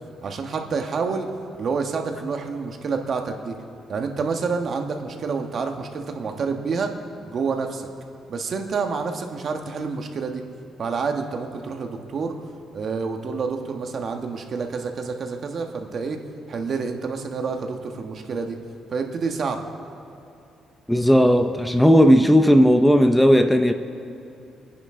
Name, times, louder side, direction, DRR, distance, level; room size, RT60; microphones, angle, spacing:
voice 1, 0.2-1.3 1.6-3.5 3.9-6.9 7.3-7.9 8.3-10.4 10.8-12.4 12.7-16.2 16.5-18.6 18.9-19.6, right 5 dB, 55° right, 4 dB, 1.3 m, -28 dB
voice 2, 20.9-23.7, equal, 5° left, 8 dB, 0.6 m, -15 dB
26.0 x 10.0 x 3.8 m, 2.7 s
cardioid pair, 90°, 0 cm